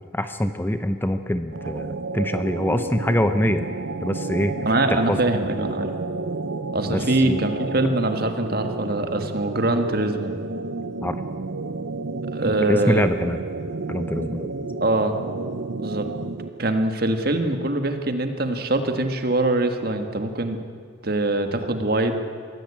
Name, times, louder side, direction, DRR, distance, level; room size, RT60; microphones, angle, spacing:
voice 1, 0.0-3.6 4.0-4.5 4.9-5.2 6.9-7.4 11.0-11.2 12.4-13.4 13.9-14.5, left 1 dB, 10° left, 9 dB, 0.7 m, -24 dB
sound 1, 1.5-16.6, right 3 dB, 75° right, 0.8 m, -31 dB
voice 2, 4.7-5.9 6.7-10.3 12.3-13.1 14.8-15.2 15.8-16.1 16.6-20.6 21.0-22.2, right 2 dB, 50° right, 6 dB, 1.8 m, -23 dB
22.5 x 16.0 x 8.6 m, 2.2 s
head